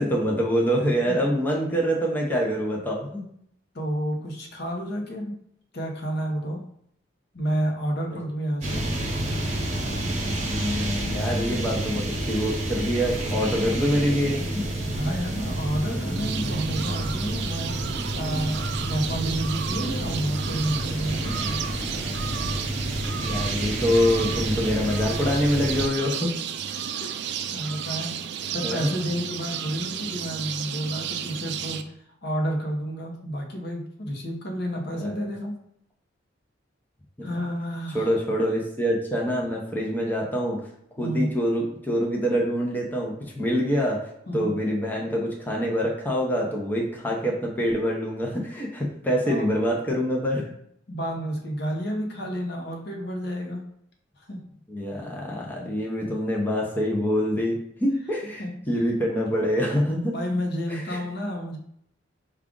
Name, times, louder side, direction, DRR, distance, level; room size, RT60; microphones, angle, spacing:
voice 1, 0.0-3.2 10.4-14.6 18.3-18.5 23.2-26.3 28.6-28.9 34.9-35.3 37.2-37.3 37.9-40.6 41.0-50.4 54.7-60.1 60.7-61.0, equal, 10° left, -2 dB, 0.6 m, -25 dB
voice 2, 3.7-5.3 5.7-6.6 7.3-8.9 14.9-21.6 27.5-28.1 28.5-35.6 37.2-38.2 41.0-41.3 44.3-44.5 49.3-49.5 50.9-53.6 54.2-54.4 58.4-58.5 60.1-61.6, equal, 60° left, 1 dB, 0.8 m, -30 dB
sound 1, 8.6-25.9, right 1 dB, 40° right, 1.0 m, -29 dB
sound 2, 16.2-31.8, right 8 dB, 60° right, 0.3 m, -33 dB
4.8 x 2.4 x 3.7 m, 0.71 s
head